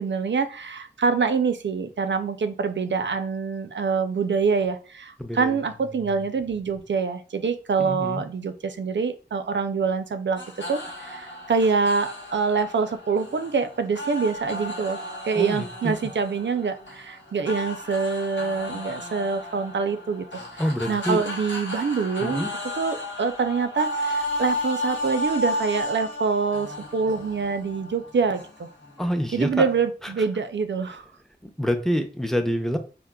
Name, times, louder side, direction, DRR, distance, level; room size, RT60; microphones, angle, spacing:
voice 1, 0.0-10.4 10.7-15.0 15.2-20.2 20.9-22.5 22.8-28.7 29.3-31.0, right 5 dB, 80° right, 9 dB, 0.4 m, -25 dB
voice 2, 5.2-5.6 6.1-6.2 7.8-8.2 15.4-15.9 20.6-21.2 22.2-22.5 29.0-29.6 31.6-32.8, equal, ahead, 6 dB, 0.5 m, -26 dB
sound 1, 10.4-29.9, left 1 dB, 90° left, 1.0 m, -34 dB
4.8 x 2.0 x 2.2 m, 0.36 s
wide cardioid pair, 50°, 19 cm